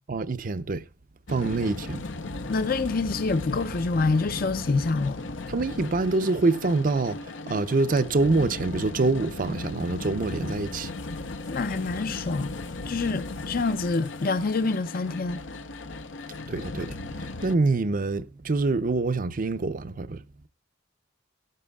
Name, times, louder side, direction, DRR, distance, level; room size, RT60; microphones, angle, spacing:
voice 1, 0.1-0.8 1.3-2.0 5.5-10.9 16.5-20.2, right 3 dB, 45° right, 0.6 m, -26 dB
sound 1, 1.3-17.6, left 2 dB, 85° left, 0.9 m, -36 dB
voice 2, 2.5-5.2 11.5-12.6 12.8-15.4, left 3 dB, 50° left, 0.6 m, -26 dB
15.0 x 12.0 x 2.3 m
head